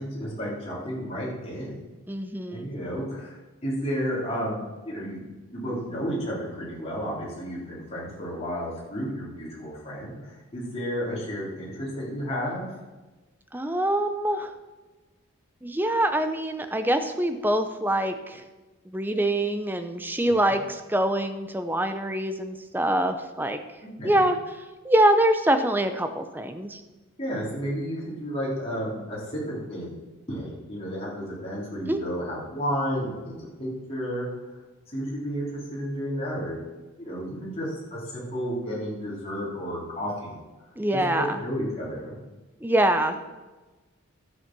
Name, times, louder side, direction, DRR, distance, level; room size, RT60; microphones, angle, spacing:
voice 1, 0.0-1.8 2.5-12.7 20.3-20.5 23.8-24.2 27.2-29.9 30.3-34.3 34.9-36.6 37.0-40.4 41.1-42.1, equal, 30° left, -6 dB, 3.4 m, -32 dB
voice 2, 2.1-2.7 13.5-14.5 15.6-18.4 18.9-23.6 24.0-24.4 24.8-26.8 31.9-32.0 40.8-41.4 42.6-43.2, right 1 dB, 10° right, 8 dB, 0.6 m, -24 dB
12.0 x 7.4 x 6.1 m, 1.2 s
head